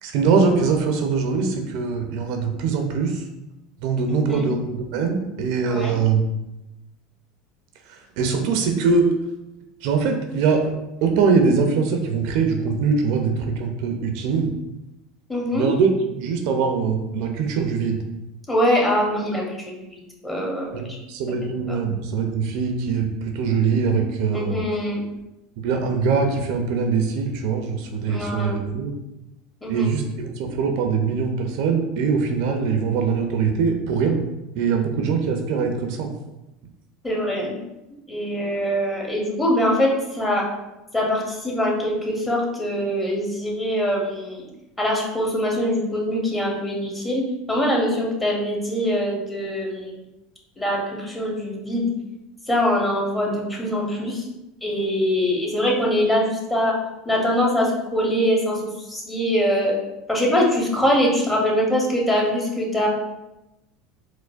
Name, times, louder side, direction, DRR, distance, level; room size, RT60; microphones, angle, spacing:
voice 1, 0.0-3.3 3.8-6.2 7.9-9.1 9.8-10.7 11.0-14.5 15.5-18.0 20.7-24.6 25.6-28.9 29.7-34.2 34.6-36.1, right 5 dB, 65° right, 4 dB, 0.4 m, -22 dB
voice 2, 4.1-4.5 5.6-5.9 15.3-15.7 18.5-19.9 20.2-21.0 21.7-21.8 24.3-25.0 28.1-28.5 29.6-29.9 37.0-37.6 38.1-40.4 40.9-44.5 44.8-50.0 50.6-51.9 52.5-54.3 54.6-56.8 57.0-59.7 60.1-62.9, equal, 15° left, -2 dB, 1.0 m, -23 dB
4.4 x 2.1 x 2.4 m, 0.96 s
supercardioid pair, 100°, 0 cm